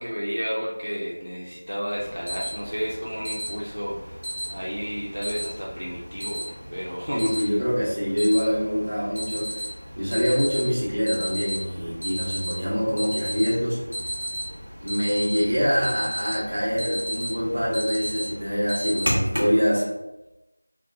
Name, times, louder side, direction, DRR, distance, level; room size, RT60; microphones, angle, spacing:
voice 1, 0.0-4.0 4.5-7.5, equal, 75° right, -5 dB, 0.7 m, -31 dB
Alarm, 2.0-19.6, equal, 90° left, 1.3 m, -33 dB
voice 2, 7.1-9.5 10.0-13.8 14.8-19.8, equal, 40° right, -8 dB, 1.2 m, -24 dB
3.4 x 2.3 x 2.6 m, 0.95 s
figure-of-eight pair, 175°, 0 cm